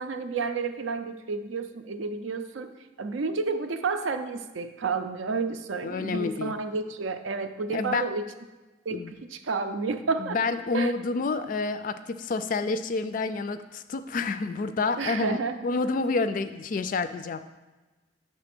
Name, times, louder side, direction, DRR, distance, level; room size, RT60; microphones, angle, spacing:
voice 1, 0.0-2.7 3.0-8.2 8.9-10.4 10.7-10.9 15.0-15.6, right 4 dB, 80° right, 9 dB, 0.5 m, -30 dB
voice 2, 5.8-6.6 7.7-8.1 8.9-9.1 10.2-17.4, left 4 dB, 45° left, 11 dB, 0.3 m, -29 dB
7.9 x 3.5 x 5.9 m, 1.2 s
head